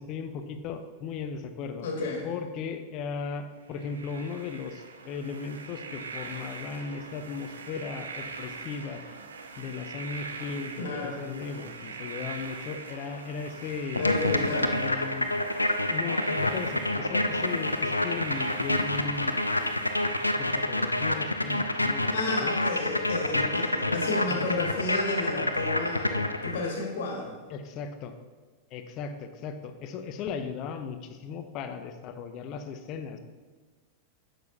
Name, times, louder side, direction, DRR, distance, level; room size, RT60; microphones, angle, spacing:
voice 1, 0.0-1.9 2.2-9.0 9.6-14.0 14.7-15.5 15.9-19.8 20.3-22.5 23.3-23.5 24.3-24.9 27.5-28.1 28.7-33.2, left 5 dB, 40° left, 8 dB, 0.8 m, -37 dB
voice 2, 1.8-2.3 10.8-11.2 13.9-14.7 22.1-27.4, left 3 dB, 60° left, 0 dB, 2.0 m, -32 dB
sound 1, 3.7-20.3, right 4 dB, 70° right, 0.7 m, -41 dB
sound 2, 14.0-26.8, left 1 dB, 85° left, 0.5 m, -28 dB
10.5 x 7.9 x 2.7 m, 1.4 s
figure-of-eight pair, 90°, 0 cm